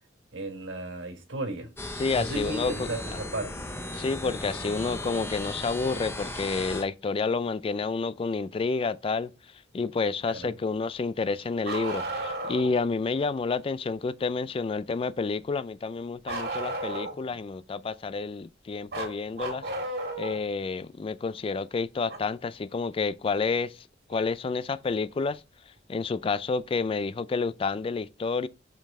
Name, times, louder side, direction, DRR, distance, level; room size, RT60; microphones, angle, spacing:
voice 1, 0.3-1.7 2.1-3.5 10.3-10.5, right 2 dB, 85° right, 1.6 m, -34 dB
sound 1, 1.8-6.8, left 1 dB, 15° left, 0.7 m, -36 dB
voice 2, 2.0-2.9 3.9-9.3 9.7-19.7 20.2-23.8 24.1-25.4 25.9-28.5, left 4 dB, 30° left, 0.3 m, -29 dB
Bark, 11.6-12.7 16.3-17.3 18.9-20.4 22.1-22.2 24.1-24.2 25.3-25.4, right 2 dB, 60° right, 1.9 m, -33 dB
5.4 x 5.3 x 3.7 m
head